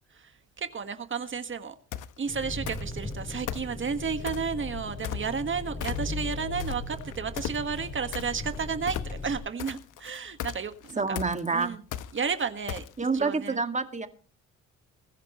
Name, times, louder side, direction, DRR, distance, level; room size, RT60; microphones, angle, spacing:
voice 1, 0.6-1.7 2.2-9.0 9.2-11.2 11.5-11.8 12.1-12.8 13.1-13.6, right 6 dB, 40° right, 1.7 m, -32 dB
sound 1, 1.9-2.2 2.7-3.1 3.5-4.5 5.0-5.5 5.8-6.3 6.6-13.2, left 11 dB, 85° left, 1.2 m, -36 dB
Engine, 2.3-9.4, left 2 dB, 25° left, 5.6 m, -37 dB
voice 2, 11.0-11.7 13.0-14.1, right 4 dB, 25° right, 2.1 m, -28 dB
23.0 x 11.0 x 3.1 m
cardioid pair, 90°, 30 cm